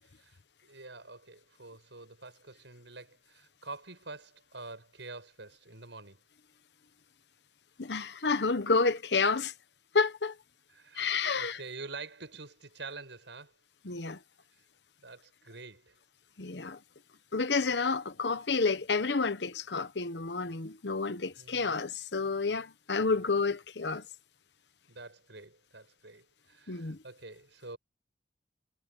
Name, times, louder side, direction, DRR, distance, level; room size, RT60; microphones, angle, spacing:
voice 1, 0.0-6.2 10.7-13.5 15.0-16.0 17.6-17.7 21.4-21.7 24.9-27.8, right 3 dB, 90° right, 6.7 m, -47 dB
voice 2, 7.8-9.5 9.9-10.3 11.0-11.6 13.8-14.2 16.4-16.8 17.3-24.0 26.7-27.0, left 4 dB, 70° left, 1.0 m, -30 dB
head